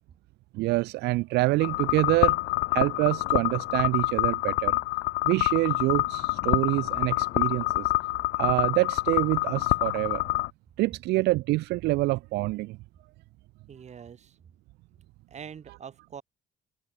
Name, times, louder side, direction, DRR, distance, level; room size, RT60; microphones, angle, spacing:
voice 1, 0.5-2.4 2.7-4.8 5.2-7.9 8.4-10.2 10.8-12.8, right 20 dB, 80° right, 0.5 m, -26 dB
sound 1, 1.6-10.5, left 21 dB, 90° left, 0.8 m, -27 dB
voice 2, 13.7-14.4 15.3-16.2, right 7 dB, 40° right, 6.2 m, -44 dB
cardioid pair, 110°, 17 cm